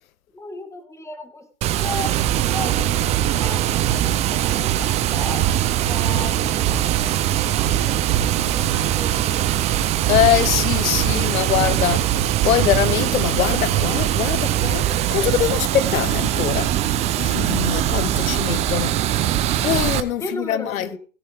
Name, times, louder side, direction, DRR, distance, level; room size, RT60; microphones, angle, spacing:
voice 1, 0.3-6.8 7.8-9.5 20.2-21.0, left 2 dB, 5° left, 1.6 m, -35 dB
Water, 1.6-20.0, right 12 dB, 15° right, 0.5 m, -21 dB
voice 2, 10.1-12.1 12.4-16.7 17.2-19.0 19.6-20.9, left 11 dB, 85° left, 1.0 m, -23 dB
17.0 x 9.9 x 3.5 m
supercardioid pair, 145°, 41 cm